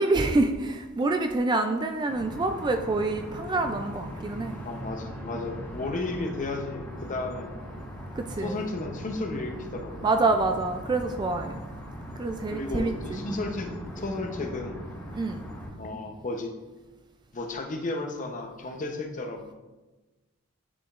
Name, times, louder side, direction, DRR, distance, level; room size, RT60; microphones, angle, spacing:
voice 1, 0.0-4.6 5.3-5.5 8.2-8.6 10.0-11.6 12.2-13.4 15.1-15.4, right 2 dB, 20° right, 5 dB, 0.3 m, -27 dB
sound 1, 2.1-15.7, equal, 10° left, 1.1 m, -40 dB
voice 2, 4.6-7.5 8.4-9.9 12.5-13.7 14.0-14.8 15.8-16.5 17.3-19.5, left 2 dB, 35° left, 3 dB, 0.8 m, -33 dB
9.6 x 5.0 x 2.5 m, 1.2 s
head